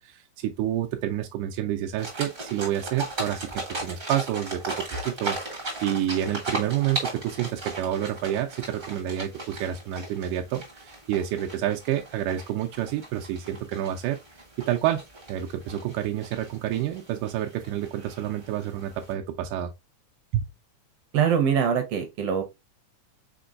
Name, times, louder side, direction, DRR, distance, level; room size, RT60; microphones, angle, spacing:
voice 1, 0.0-14.2 14.6-15.0 15.3-19.7 20.3-20.4, right 11 dB, 85° right, 2.1 m, -29 dB
sound 1, 2.0-19.1, right 2 dB, 50° right, 0.6 m, -37 dB
voice 2, 21.1-22.4, right 7 dB, 70° right, 1.5 m, -23 dB
5.1 x 3.8 x 2.4 m
omnidirectional pair, 3.5 m